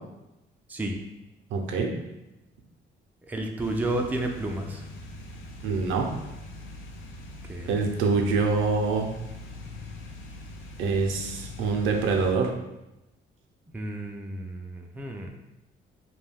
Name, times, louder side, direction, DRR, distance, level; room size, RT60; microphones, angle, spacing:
voice 1, 1.5-1.9 5.6-6.1 7.7-9.1 10.8-12.5, right 4 dB, 90° right, 2 dB, 0.5 m, -25 dB
voice 2, 3.2-4.8 7.5-7.9 13.7-15.3, right 1 dB, 10° right, 2 dB, 0.3 m, -31 dB
sound 1, 3.6-12.3, left 2 dB, 75° left, 0.4 m, -42 dB
2.2 x 2.2 x 3.3 m, 0.96 s
cardioid pair, 90°, 20 cm